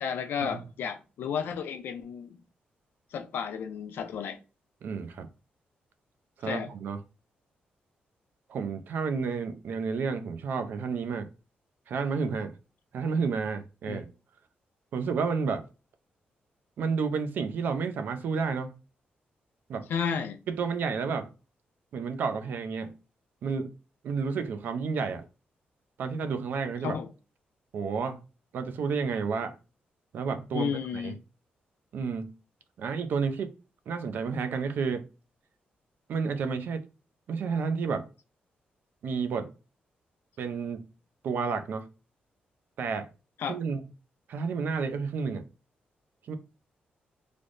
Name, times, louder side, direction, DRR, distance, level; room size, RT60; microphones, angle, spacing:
voice 1, 0.0-2.4 3.1-4.4 6.4-6.7 13.9-14.1 19.9-20.4 26.8-27.1 30.5-31.2 43.4-43.6, left 7 dB, 85° left, 0.5 m, -32 dB
voice 2, 4.8-5.3 6.4-7.0 8.5-11.3 11.9-12.5 12.9-14.1 14.9-15.6 16.8-18.7 19.7-19.9 20.5-21.3 21.9-22.9 23.4-23.7 24.0-25.2 26.0-27.0 27.7-28.2 28.5-29.5 30.1-31.2 31.9-32.3 32.8-33.6 33.9-35.0 36.1-36.8 37.3-38.1 39.0-39.5 40.4-40.8 41.2-41.9 42.8-43.1 43.5-43.8 44.3-45.5 46.3-46.4, right 5 dB, 65° right, 0.4 m, -31 dB
3.3 x 2.0 x 3.7 m
wide cardioid pair, 165°, 4 cm